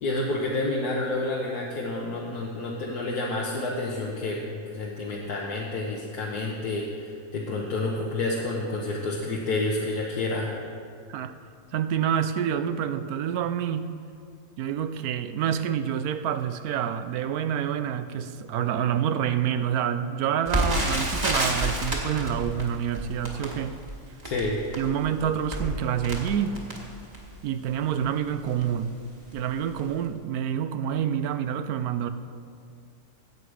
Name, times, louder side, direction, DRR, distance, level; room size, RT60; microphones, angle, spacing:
voice 1, 0.0-10.5 24.2-24.6, left 2 dB, 80° left, -3 dB, 1.6 m, -29 dB
voice 2, 11.7-13.9 14.6-23.8 24.8-26.5 27.4-28.9 29.3-32.1, right 9 dB, 75° right, 11 dB, 1.0 m, -27 dB
Crackle, 20.5-27.4 28.0-28.1 28.4-28.7 29.3-29.5 29.8-29.9, right 1 dB, 25° right, 1.8 m, -30 dB
15.0 x 8.2 x 4.8 m, 2.3 s
omnidirectional pair, 1.6 m